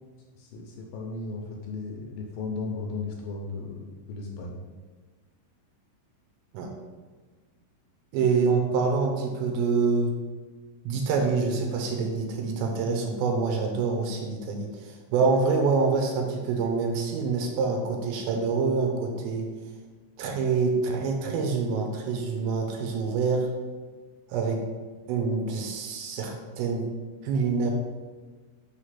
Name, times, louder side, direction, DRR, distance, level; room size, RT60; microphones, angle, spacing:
voice 1, 0.4-4.6, left 3 dB, 80° left, 0 dB, 2.2 m, -35 dB
voice 2, 8.1-10.1 10.8-19.5 20.2-23.5 24.3-24.6 25.1-26.9 27.2-27.7, right 4 dB, 85° right, 3 dB, 2.5 m, -26 dB
5.8 x 3.3 x 5.7 m, 1.4 s
omnidirectional pair, 4.5 m